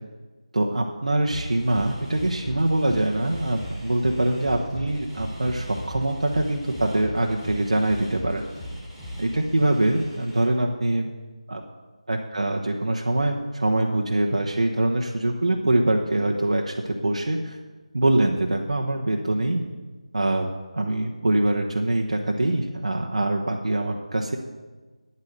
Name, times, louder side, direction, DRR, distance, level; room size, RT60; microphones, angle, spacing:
voice 1, 0.5-8.4 9.2-11.1 11.5-11.6 12.1-17.6 17.9-19.6 20.1-20.5 20.7-24.4, right 1 dB, 70° right, 1 dB, 1.0 m, -24 dB
sound 1, 1.3-10.4, equal, ahead, 2.1 m, -38 dB
9.6 x 8.5 x 6.7 m, 1.3 s
figure-of-eight pair, 165°, 4 cm